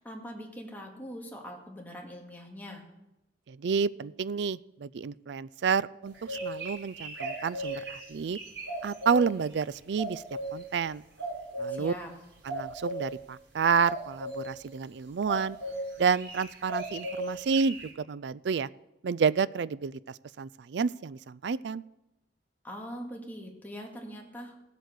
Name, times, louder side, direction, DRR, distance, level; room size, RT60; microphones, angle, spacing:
voice 1, 0.0-2.8 11.7-12.1 22.6-24.6, equal, 10° left, -1 dB, 2.1 m, -42 dB
voice 2, 3.5-8.4 8.8-10.2 10.5-11.0 11.6-11.9 12.4-15.6 16.0-18.7 19.0-21.8, right 5 dB, 70° right, 20 dB, 0.4 m, -29 dB
sound 1, 6.0-9.2 10.0-10.6 11.2-11.7 12.5-13.0 13.8-14.5 15.3-15.8 16.1-17.9, right 1 dB, 85° right, 3.9 m, -36 dB
16.5 x 8.1 x 6.5 m, 0.93 s
head